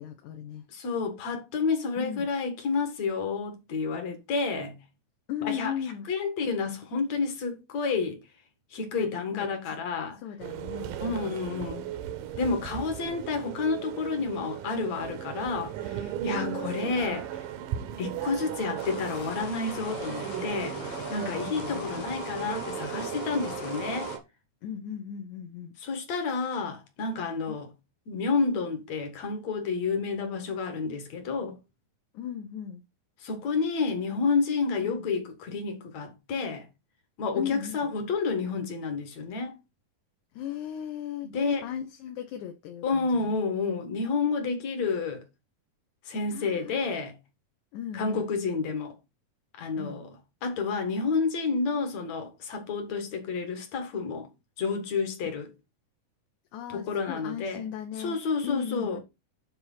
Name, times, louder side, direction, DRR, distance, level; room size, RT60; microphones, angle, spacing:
voice 1, 0.0-0.7 2.0-2.3 5.3-6.1 9.0-9.8 10.2-10.9 16.3-17.2 21.3-22.1 24.6-25.8 32.1-32.8 34.8-35.1 37.4-37.9 40.3-43.3 46.3-46.8 47.7-48.3 49.7-50.0 56.5-59.0, left 9 dB, 70° left, 2.1 m, -37 dB
voice 2, 0.7-4.8 5.4-5.7 6.1-8.2 8.7-10.2 11.0-11.9 12.3-17.3 18.0-20.8 21.1-24.1 25.8-27.7 28.1-31.6 33.2-36.7 37.2-39.5 41.2-41.6 42.8-45.2 46.1-47.1 47.9-48.9 49.6-50.1 50.4-54.3 54.6-55.5 56.7-57.6 58.0-59.0, left 4 dB, 55° left, 2.8 m, -30 dB
sound 1, 10.4-24.2, right 10 dB, 80° right, 2.5 m, -36 dB
sound 2, 18.8-24.2, left 7 dB, 85° left, 3.3 m, -40 dB
9.9 x 3.7 x 5.6 m
omnidirectional pair, 3.9 m